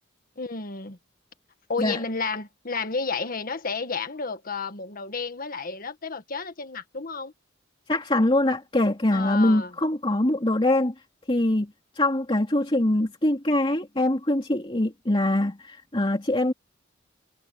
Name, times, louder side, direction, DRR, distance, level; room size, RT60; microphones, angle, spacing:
voice 1, 0.4-1.0 1.7-7.3 9.1-9.7, left 4 dB, 50° left, 1.6 m, -31 dB
voice 2, 7.9-10.9 11.3-16.5, left 1 dB, 25° left, 2.6 m, -23 dB
head